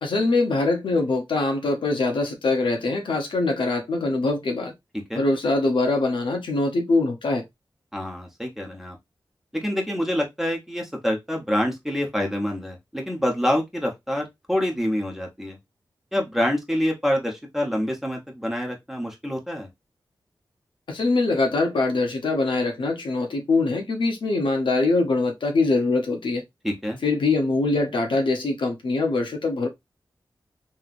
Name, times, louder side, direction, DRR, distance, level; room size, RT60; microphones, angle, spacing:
voice 1, 0.0-4.7 5.1-7.4 20.9-26.4 27.0-29.7, left 3 dB, 85° left, 0.8 m, -23 dB
voice 2, 7.9-9.0 9.5-15.6 16.1-19.7 26.6-27.0, equal, 5° right, 1.0 m, -26 dB
3.1 x 2.8 x 2.5 m
wide cardioid pair, 80°, 8 cm